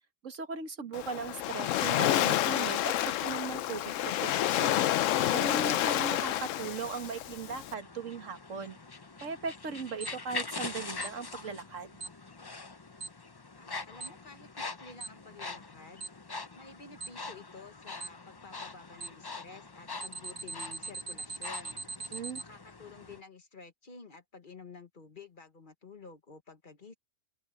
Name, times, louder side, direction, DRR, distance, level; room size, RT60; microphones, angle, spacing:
voice 1, 0.2-4.9 5.3-8.8 9.2-11.9 22.1-22.4, right 5 dB, 80° right, 1.9 m, -38 dB
Waves surf, 0.9-7.7, left 13 dB, 85° left, 1.0 m, -29 dB
sound 1, 5.5-23.2, left 3 dB, 25° left, 0.6 m, -44 dB
Alarm, 10.0-10.1 11.0-11.1 12.0-12.1 13.0-13.1 14.0-14.1 15.0-15.1 16.0-16.1 17.0-17.1 18.0-18.1 19.0-19.1 20.0-22.4, right 4 dB, 45° right, 1.8 m, -39 dB
voice 2, 13.5-16.1 16.5-21.8 22.4-27.0, left 4 dB, 40° left, 1.4 m, -51 dB
omnidirectional pair, 1.3 m